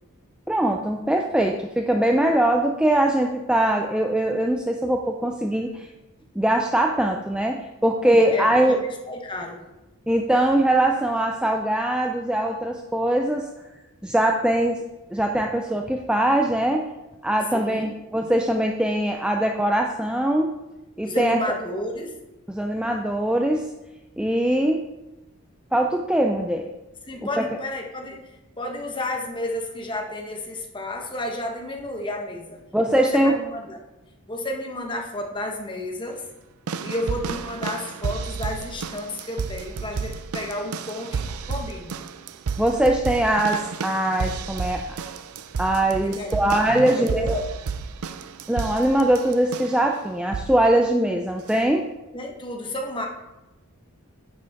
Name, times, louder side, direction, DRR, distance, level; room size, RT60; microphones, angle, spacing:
voice 1, 0.5-5.9 6.4-8.8 10.1-13.5 14.0-14.8 15.1-16.9 17.2-20.5 21.0-21.4 22.5-23.7 24.2-24.8 25.7-26.7 27.4-27.5 32.7-33.4 42.6-45.0 45.6-47.4 48.5-51.9, right 1 dB, 5° right, 2 dB, 0.4 m, -22 dB
voice 2, 8.1-9.6 17.5-17.9 21.0-22.2 27.0-28.2 28.6-32.6 32.9-33.8 34.3-36.3 36.8-42.0 46.0-46.4 46.7-47.4 52.1-53.1, left 1 dB, 20° left, 1 dB, 1.1 m, -31 dB
sound 1, 36.7-49.9 50.3-50.7 51.5-51.6, right 5 dB, 80° right, 0.5 m, -32 dB
10.0 x 7.1 x 3.6 m, 0.99 s
head